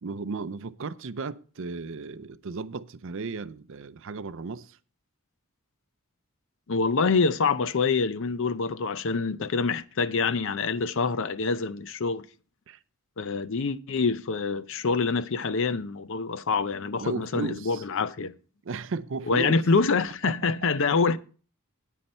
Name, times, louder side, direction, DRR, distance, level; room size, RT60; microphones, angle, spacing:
voice 1, 0.0-4.8 12.7-12.8 17.0-17.8 18.6-19.6 20.2-20.3, right 4 dB, 60° right, 0.5 m, -35 dB
voice 2, 6.7-12.2 13.2-18.3 19.3-21.2, left 4 dB, 60° left, 0.5 m, -26 dB
9.6 x 9.3 x 4.3 m
head